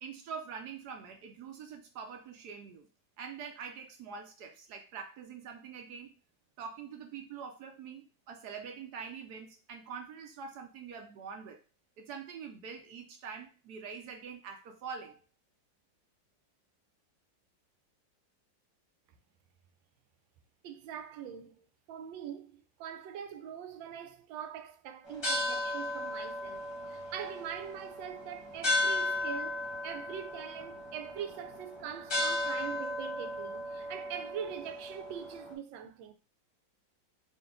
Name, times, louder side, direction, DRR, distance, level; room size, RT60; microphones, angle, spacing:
voice 1, 0.0-2.9 3.2-6.1 6.6-11.6 12.0-15.2, right 6 dB, 70° right, 1.0 m, -44 dB
voice 2, 20.6-36.1, right 9 dB, 85° right, 1.3 m, -43 dB
sound 1, 25.1-35.5, left 1 dB, 20° left, 0.9 m, -35 dB
4.0 x 2.8 x 3.6 m
omnidirectional pair, 2.0 m